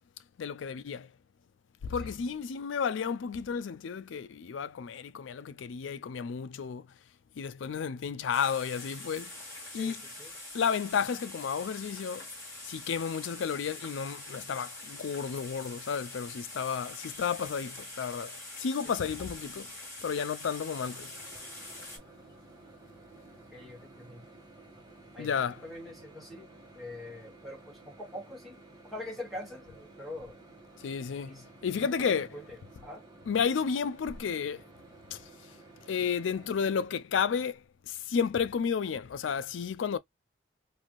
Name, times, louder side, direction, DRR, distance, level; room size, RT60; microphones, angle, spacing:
voice 1, 0.4-1.1 1.8-6.9 7.4-9.3 9.7-10.0 10.5-12.2 12.6-19.7 20.0-21.1 25.2-25.6 30.8-32.3 33.3-34.6 35.1-35.2 35.9-37.6 37.9-40.0, left 6 dB, 80° left, 0.4 m, -32 dB
voice 2, 2.0-2.4 9.7-10.3 19.6-19.7 23.5-24.2 25.1-25.3 25.6-26.5 26.7-28.6 28.8-30.4 31.2-31.4 31.7-33.0, left 1 dB, ahead, 1.3 m, -44 dB
sound 1, 8.3-22.0, left 2 dB, 15° left, 1.6 m, -44 dB
Microwave oven, 20.6-36.9, right 2 dB, 20° right, 1.2 m, -54 dB
3.1 x 2.6 x 2.5 m
head